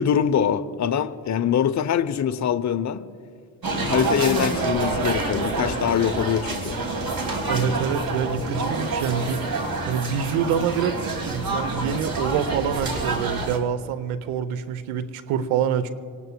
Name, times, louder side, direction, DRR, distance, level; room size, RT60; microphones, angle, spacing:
voice 1, 0.0-3.0 3.8-6.8, left 8 dB, 35° left, 10 dB, 0.7 m, -23 dB
sound 1, 3.6-13.6, right 3 dB, 45° right, 2.5 m, -27 dB
voice 2, 7.5-9.5 9.9-11.0 11.3-15.9, right 8 dB, 75° right, 13 dB, 0.9 m, -26 dB
25.0 x 18.5 x 2.3 m, 2.3 s
hypercardioid pair, 50°, 50 cm